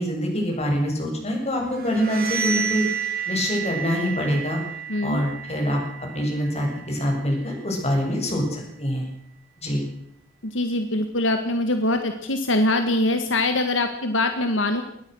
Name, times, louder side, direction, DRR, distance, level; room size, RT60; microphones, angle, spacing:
voice 1, 0.0-2.9 3.3-4.6 5.0-9.1 9.6-9.8, equal, 35° left, 1 dB, 7.4 m, -25 dB
sound 1, 1.7-7.4, right 7 dB, 55° right, 4.0 m, -31 dB
voice 2, 4.9-5.2 10.4-14.8, left 2 dB, 75° left, 7 dB, 1.8 m, -23 dB
22.0 x 19.0 x 6.4 m, 0.74 s
head